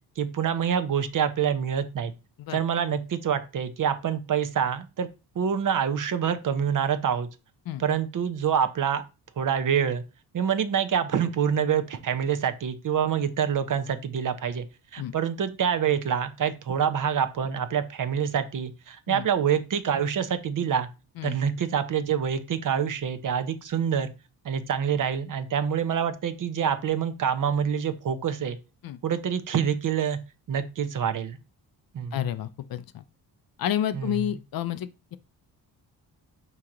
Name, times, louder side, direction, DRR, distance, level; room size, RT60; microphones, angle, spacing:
voice 1, 0.2-2.1 2.5-5.1 5.4-7.3 7.8-9.0 9.4-10.0 10.3-14.7 14.9-20.9 21.2-24.1 24.4-28.6 29.0-30.2 30.5-31.4 31.9-32.1 33.9-34.1, right 8 dB, 45° right, 0.7 m, -26 dB
voice 2, 32.1-33.0 33.6-35.2, left 11 dB, 55° left, 0.5 m, -30 dB
4.6 x 2.9 x 3.7 m
cardioid pair, 70°, 43 cm